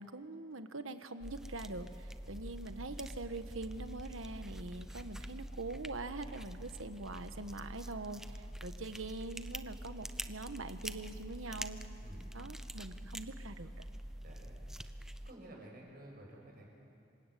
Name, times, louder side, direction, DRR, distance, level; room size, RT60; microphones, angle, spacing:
voice 1, 0.0-11.8 12.3-13.8, right 2 dB, 85° right, 9 dB, 1.4 m, -44 dB
sound 1, 1.2-15.3, right 1 dB, ahead, 0.5 m, -46 dB
voice 2, 12.0-12.3 14.2-14.6 15.3-16.7, right 1 dB, 45° right, 0 dB, 7.0 m, -52 dB
27.5 x 24.0 x 8.5 m, 2.5 s
head